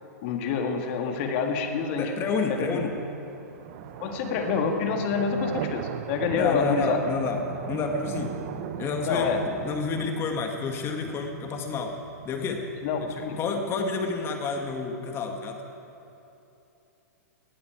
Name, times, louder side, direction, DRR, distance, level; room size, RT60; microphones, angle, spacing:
voice 1, 0.2-2.1 2.5-2.9 4.0-7.0 9.1-9.4 12.4-12.5 12.8-13.4, left 6 dB, 45° left, 4 dB, 1.8 m, -27 dB
sound 1, 0.9-14.9, right 9 dB, 50° right, 0.9 m, -39 dB
voice 2, 2.0-3.0 6.4-7.4 7.7-8.4 8.8-11.9 12.2-12.6 13.0-15.6, left 4 dB, 25° left, 4 dB, 1.9 m, -29 dB
19.0 x 12.5 x 4.6 m, 2.8 s
hypercardioid pair, 120°, 9 cm